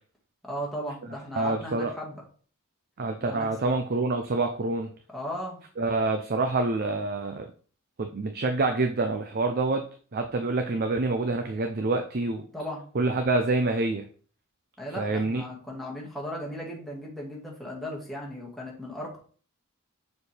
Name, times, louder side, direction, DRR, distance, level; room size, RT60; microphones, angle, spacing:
voice 1, 0.4-2.2 3.2-3.8 5.1-5.6 12.5-12.8 14.8-19.2, equal, ahead, -4 dB, 1.8 m, -36 dB
voice 2, 1.4-1.9 3.0-4.9 5.8-7.5 8.0-9.8 10.1-12.5 12.9-14.0 15.0-15.4, right 3 dB, 45° right, 6 dB, 0.6 m, -27 dB
6.8 x 4.4 x 3.4 m, 0.42 s
head